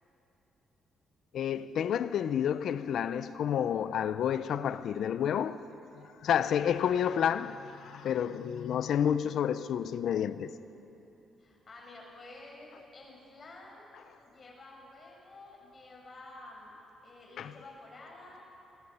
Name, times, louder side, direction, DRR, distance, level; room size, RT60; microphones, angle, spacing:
voice 1, 1.3-5.6 6.2-10.5 17.4-17.5, left 9 dB, 70° left, 0.8 m, -30 dB
voice 2, 11.4-13.9 14.2-16.7 17.0-18.4, left 2 dB, 40° left, 6.2 m, -51 dB
28.0 x 22.0 x 5.7 m
cardioid pair, 90°, 0 cm